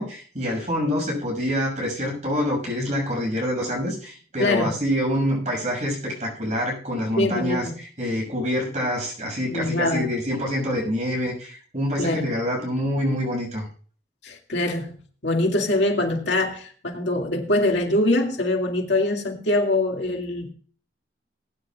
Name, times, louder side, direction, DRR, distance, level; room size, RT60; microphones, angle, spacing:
voice 1, 0.0-13.7, equal, 40° right, 0 dB, 6.6 m, -26 dB
voice 2, 4.4-4.8 7.2-7.7 9.5-10.1 12.0-12.3 14.2-15.0 15.2-20.5, left 2 dB, 85° left, 1 dB, 2.2 m, -23 dB
20.5 x 10.0 x 2.4 m, 0.43 s
head